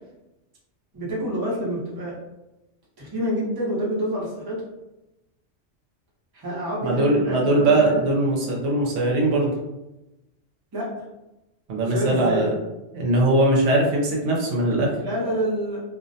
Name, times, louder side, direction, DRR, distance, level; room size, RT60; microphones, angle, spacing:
voice 1, 0.9-2.2 3.0-4.6 6.3-8.0 10.7-10.9 11.9-12.5 15.0-15.8, equal, 25° right, -6 dB, 0.6 m, -27 dB
voice 2, 6.8-9.5 11.7-12.5 12.9-14.9, right 2 dB, 75° right, -2 dB, 0.9 m, -20 dB
2.4 x 2.1 x 2.6 m, 0.98 s
omnidirectional pair, 1.3 m